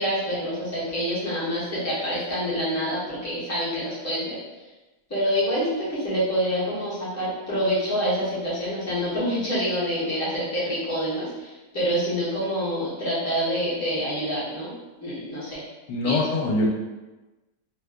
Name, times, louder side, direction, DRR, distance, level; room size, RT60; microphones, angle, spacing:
voice 1, 0.0-4.4 5.1-14.7 15.0-15.6 16.0-16.2, equal, 15° left, -10 dB, 0.8 m, -27 dB
voice 2, 15.9-16.7, left 2 dB, 85° left, 0 dB, 1.2 m, -23 dB
2.8 x 2.2 x 3.5 m, 1.1 s
omnidirectional pair, 1.7 m